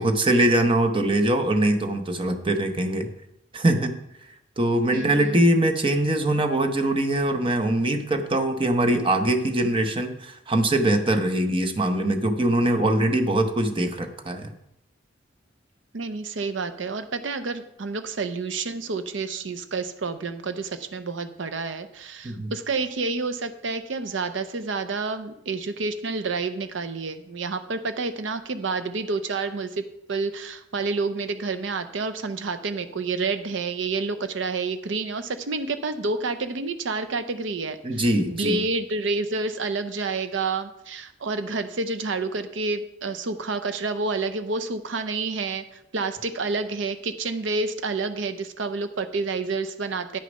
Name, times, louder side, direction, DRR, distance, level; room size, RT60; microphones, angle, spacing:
voice 1, 0.0-3.1 3.5-3.9 4.6-14.5 22.2-22.5 37.8-38.6, right 1 dB, 25° right, 7 dB, 0.8 m, -22 dB
voice 2, 4.9-5.4 15.9-38.0 38.3-50.2, right 3 dB, 70° right, 10 dB, 0.6 m, -29 dB
10.0 x 6.5 x 5.2 m, 0.83 s
head